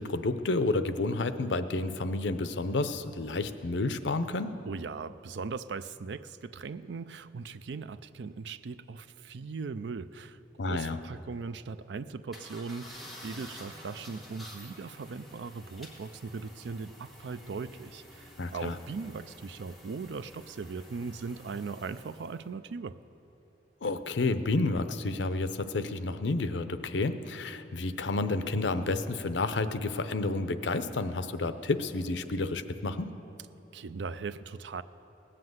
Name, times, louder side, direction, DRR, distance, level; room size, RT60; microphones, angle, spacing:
voice 1, 0.0-4.5 10.6-11.0 18.4-18.7 23.8-33.1, left 3 dB, 85° left, 11 dB, 0.7 m, -30 dB
voice 2, 4.7-22.9 33.7-34.8, right 4 dB, 75° right, 13 dB, 0.4 m, -39 dB
sound 1, 12.3-22.5, left 1 dB, ahead, 1.7 m, -50 dB
18.5 x 7.6 x 7.8 m, 2.9 s
head